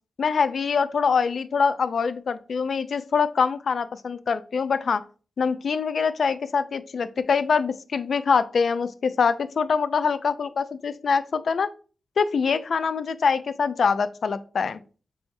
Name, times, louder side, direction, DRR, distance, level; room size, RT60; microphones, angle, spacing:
voice 1, 0.2-5.0 5.4-11.7 12.2-14.8, left 5 dB, 70° left, 12 dB, 0.4 m, -24 dB
5.5 x 3.4 x 2.6 m, 0.38 s
wide cardioid pair, 95°, 0 cm